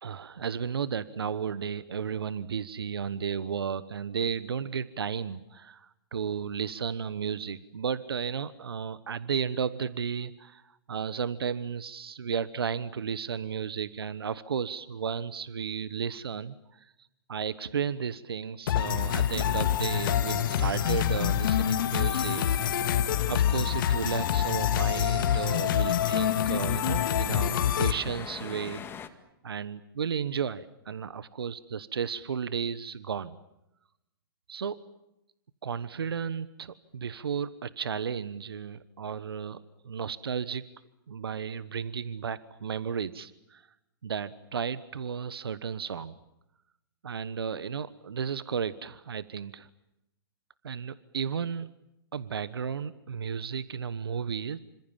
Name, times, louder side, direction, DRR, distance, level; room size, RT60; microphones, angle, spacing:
voice 1, 0.0-10.6 10.9-16.9 17.3-22.9 23.3-28.8 29.4-33.4 34.5-34.8 35.6-39.6 39.8-40.6 41.1-43.6 44.0-46.2 47.0-49.7 50.6-51.7 52.1-54.6, right 7 dB, 80° right, 16 dB, 1.2 m, -33 dB
sound 1, 18.7-27.9, left 10 dB, 60° left, 2.2 m, -26 dB
sound 2, 18.8-29.1, left 7 dB, 15° left, 2.1 m, -44 dB
27.5 x 25.5 x 7.4 m, 0.88 s
hypercardioid pair, 125°, 12 cm